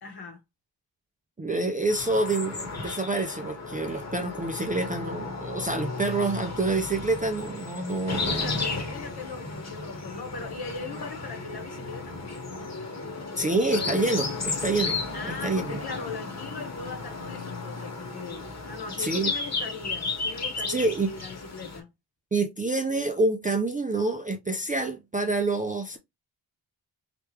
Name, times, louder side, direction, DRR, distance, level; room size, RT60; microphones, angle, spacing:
voice 1, 0.0-0.4 8.0-12.2 15.1-21.9, left 4 dB, 60° left, 1.1 m, -39 dB
voice 2, 1.4-8.5 13.4-15.8 19.0-19.3 20.7-21.1 22.3-26.0, right 2 dB, 20° right, 0.3 m, -27 dB
sound 1, 1.9-21.8, left 3 dB, 40° left, 1.1 m, -34 dB
3.3 x 2.9 x 3.1 m
wide cardioid pair, 175°, 42 cm